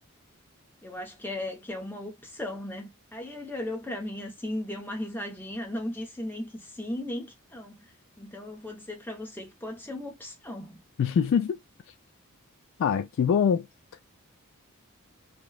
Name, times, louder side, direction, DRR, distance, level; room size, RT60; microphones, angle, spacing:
voice 1, 0.8-7.8 8.2-10.8, left 1 dB, 10° left, 0.8 m, -36 dB
voice 2, 11.0-11.6 12.8-13.7, left 7 dB, 60° left, 0.3 m, -24 dB
2.9 x 2.1 x 2.3 m
head